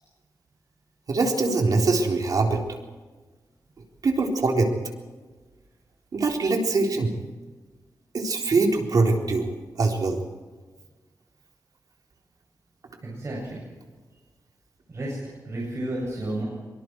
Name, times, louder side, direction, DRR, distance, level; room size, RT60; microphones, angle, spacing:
voice 1, 1.1-2.6 4.0-4.7 6.1-7.2 8.1-9.5 9.8-10.2, right 3 dB, 65° right, 1 dB, 3.9 m, -23 dB
voice 2, 13.0-13.6 14.9-15.2 15.4-16.4, right 1 dB, 45° right, -4 dB, 7.8 m, -31 dB
24.5 x 24.0 x 4.7 m, 1.3 s
wide cardioid pair, 105°, 7 cm